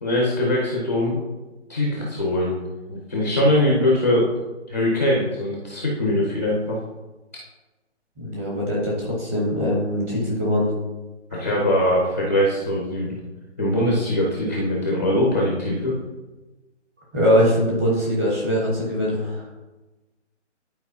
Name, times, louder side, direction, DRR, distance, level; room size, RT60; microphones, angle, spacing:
voice 1, 0.0-1.2 1.7-2.5 2.9-4.3 4.7-6.8 11.3-13.2 13.6-15.9, left 1 dB, 15° left, -4 dB, 0.6 m, -22 dB
voice 2, 8.2-10.7 17.1-19.5, equal, 10° right, -5 dB, 1.0 m, -22 dB
11.0 x 4.6 x 2.7 m, 1.1 s
hypercardioid pair, 165°, 37 cm